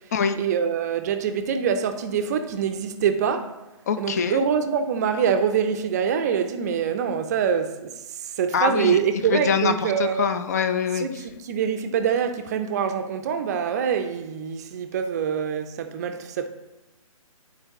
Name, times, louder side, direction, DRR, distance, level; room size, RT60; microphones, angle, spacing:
voice 1, 0.3-3.6 4.0-8.0 8.4-10.3 11.0-16.5, right 7 dB, 30° right, 0.5 m, -25 dB
voice 2, 3.9-4.4 8.5-9.0 9.3-11.1, left 6 dB, 30° left, 0.4 m, -24 dB
11.0 x 4.4 x 2.9 m
figure-of-eight pair, 135°, 18 cm